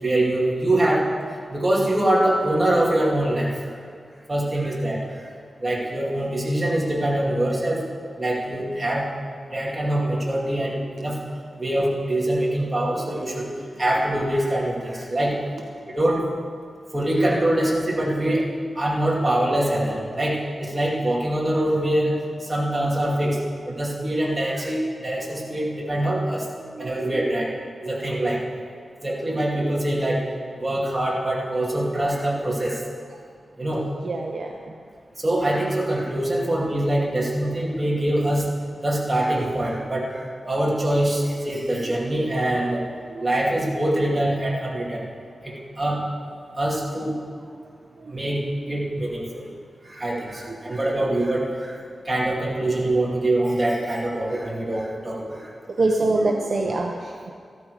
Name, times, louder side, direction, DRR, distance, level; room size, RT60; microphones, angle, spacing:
voice 1, 0.0-1.1 1.5-3.5 4.3-5.0 5.6-7.8 8.2-9.0 9.5-11.2 11.6-13.5 13.8-15.4 15.9-16.2 16.9-22.2 22.5-23.4 23.7-26.4 26.8-27.5 27.8-28.4 29.0-30.2 30.6-32.8 33.6-33.8 35.2-38.5 38.8-42.8 43.2-45.1 45.4-46.0 46.6-47.1 48.1-49.5 49.8-51.8 52.1-55.5, right 1 dB, 15° right, -5 dB, 2.6 m, -24 dB
voice 2, 34.0-34.8 43.1-43.2 47.0-47.1 47.5-47.7 48.0-48.2 48.6-48.8 50.1-50.8 55.8-57.3, right 2 dB, 50° right, 1 dB, 0.8 m, -26 dB
13.5 x 12.5 x 4.9 m, 2.1 s
wide cardioid pair, 150°, 0 cm